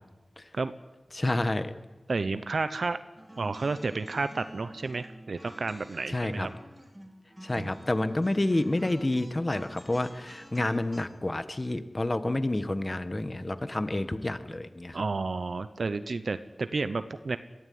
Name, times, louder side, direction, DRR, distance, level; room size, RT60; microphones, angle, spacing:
voice 1, 1.1-1.7 6.1-6.5 7.4-15.0, left 1 dB, 30° left, 12 dB, 1.4 m, -29 dB
voice 2, 2.1-3.0 3.4-6.5 7.5-7.7 14.9-17.4, right 3 dB, 70° right, 12 dB, 0.8 m, -31 dB
sound 1, 3.2-11.0, equal, 15° right, 3.2 m, -49 dB
22.0 x 15.0 x 9.5 m, 1.2 s
wide cardioid pair, 65°, 0 cm